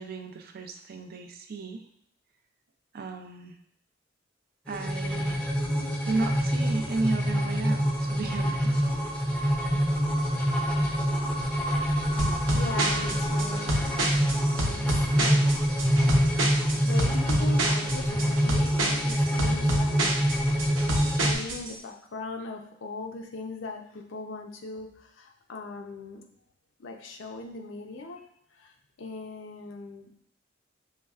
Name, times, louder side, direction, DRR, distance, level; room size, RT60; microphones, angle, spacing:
voice 1, 0.0-1.8 2.9-3.6 4.7-5.4 6.0-8.8, right 3 dB, 50° right, 6 dB, 0.4 m, -33 dB
sound 1, 4.7-21.3, equal, 5° left, 0.5 m, -26 dB
sound 2, 12.2-21.7, right 1 dB, 85° right, 0.8 m, -29 dB
voice 2, 12.5-14.0 14.3-15.6 16.8-20.1 21.2-26.2 26.8-28.3 28.5-30.2, left 3 dB, 75° left, 3 dB, 0.6 m, -40 dB
5.6 x 3.1 x 2.4 m, 0.68 s
head